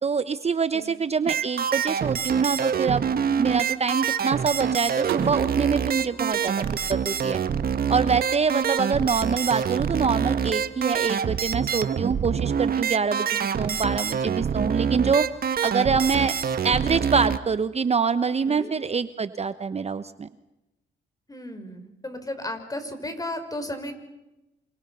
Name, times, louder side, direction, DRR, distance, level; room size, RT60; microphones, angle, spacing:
voice 1, 0.0-3.1 3.4-7.4 7.9-15.3 15.6-16.3 16.6-20.3, right 5 dB, 30° right, 13 dB, 1.0 m, -25 dB
sound 1, 1.3-17.4, right 7 dB, 50° right, 1.6 m, -26 dB
sound 2, 5.1-7.9, right 10 dB, 90° right, 3.0 m, -38 dB
voice 2, 21.3-23.9, left 1 dB, 20° left, 8 dB, 5.6 m, -34 dB
28.0 x 27.0 x 5.7 m, 0.98 s
cardioid pair, 90°, 20 cm